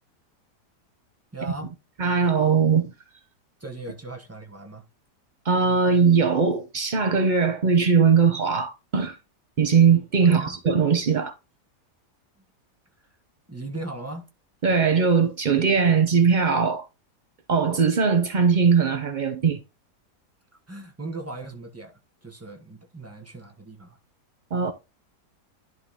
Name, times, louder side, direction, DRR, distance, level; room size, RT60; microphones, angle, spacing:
voice 1, 1.3-1.7 3.6-4.8 10.2-10.6 13.5-14.3 20.7-24.0, right 2 dB, 10° right, 1.1 m, -38 dB
voice 2, 2.0-2.9 5.4-9.2 9.6-11.3 14.6-16.9 17.5-19.6 24.5-24.7, right 6 dB, 80° right, 0.4 m, -20 dB
11.0 x 3.8 x 3.6 m
omnidirectional pair, 1.8 m